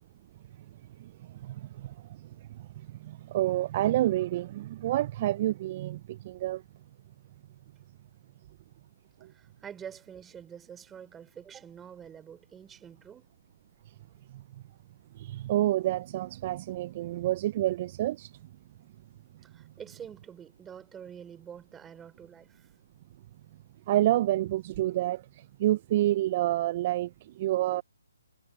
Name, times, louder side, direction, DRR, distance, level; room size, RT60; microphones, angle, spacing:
voice 1, 1.4-1.9 3.0-6.6 15.2-18.3 23.9-25.2 25.6-27.1 27.4-27.8, right 14 dB, 35° right, 0.6 m, -28 dB
voice 2, 9.3-13.3 19.4-22.7, right 8 dB, 10° right, 5.5 m, -47 dB
figure-of-eight pair, 145°, 0 cm